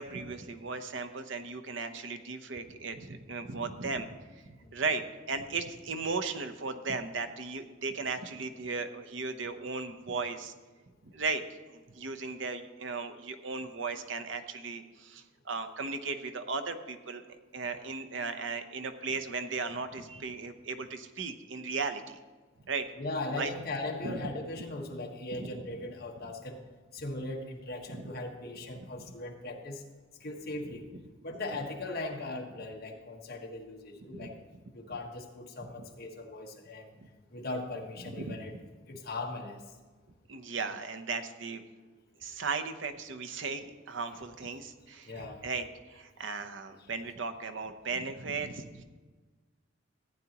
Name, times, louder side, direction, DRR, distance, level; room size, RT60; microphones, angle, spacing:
voice 1, 0.0-4.2 4.5-10.5 11.0-11.4 11.7-17.2 17.5-22.2 22.6-22.9 23.4-23.5 24.0-24.1 25.4-25.5 27.9-28.0 34.1-34.3 38.1-38.3 40.3-41.6 42.2-45.1 45.4-48.8, right 4 dB, 65° right, 9 dB, 0.8 m, -36 dB
voice 2, 23.0-26.6 26.9-29.8 30.2-30.8 31.2-34.4 34.7-36.9 37.3-38.5 38.9-39.6 45.0-45.5 46.2-46.4, left 2 dB, 50° left, 1 dB, 1.4 m, -39 dB
14.5 x 9.5 x 2.9 m, 1.3 s
head